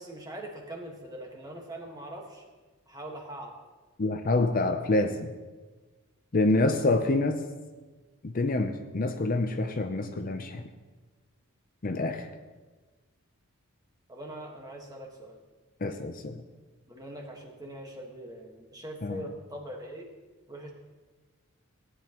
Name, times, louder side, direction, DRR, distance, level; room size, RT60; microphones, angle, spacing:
voice 1, 0.0-2.4 2.9-3.6 14.1-15.4 16.9-20.1 20.5-20.7, right 1 dB, 15° right, 0 dB, 1.5 m, -42 dB
voice 2, 4.0-5.3 6.3-7.4 8.2-10.6 11.8-12.3 15.8-16.4 19.0-19.2, left 2 dB, 40° left, 6 dB, 0.6 m, -27 dB
17.5 x 9.6 x 3.0 m, 1.3 s
head